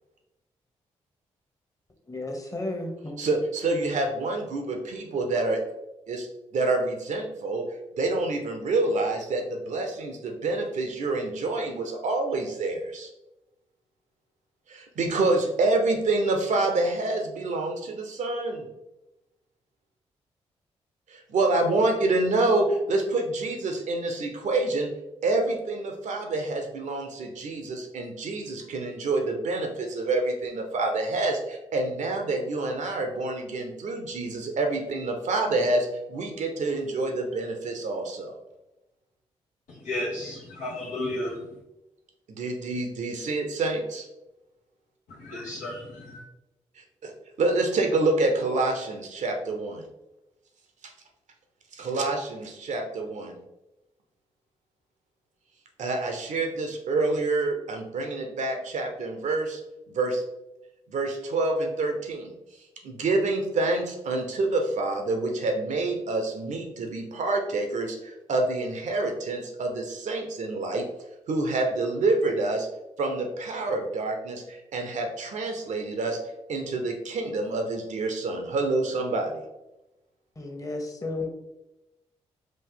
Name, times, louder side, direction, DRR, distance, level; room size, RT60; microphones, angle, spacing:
voice 1, 2.1-3.3 80.4-81.3, left 2 dB, 25° left, 3 dB, 1.1 m, -33 dB
voice 2, 3.2-5.6 6.1-6.3 6.5-7.6 8.0-13.1 14.7-18.7 21.1-24.9 25.2-38.3 42.3-44.1 47.4-49.8 51.7-53.4 55.8-59.6 59.9-60.2 60.9-62.3 62.8-70.8 71.3-72.7 73.0-76.2 76.5-79.4, right 2 dB, 70° right, 4 dB, 0.9 m, -27 dB
voice 3, 39.7-41.5 45.1-46.2, left 1 dB, 75° left, -6 dB, 0.9 m, -33 dB
5.0 x 2.5 x 3.9 m, 0.95 s
supercardioid pair, 45°, 13 cm